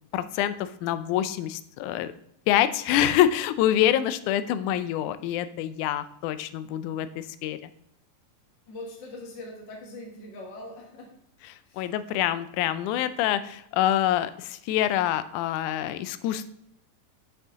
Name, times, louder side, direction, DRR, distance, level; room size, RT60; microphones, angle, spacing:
voice 1, 0.1-2.1 2.5-7.6 11.5-16.5, left 12 dB, 80° left, 13 dB, 1.9 m, -26 dB
voice 2, 8.7-11.1 11.6-11.9, left 2 dB, 45° left, -1 dB, 1.8 m, -41 dB
10.5 x 6.6 x 3.6 m, 0.75 s
omnidirectional pair, 3.7 m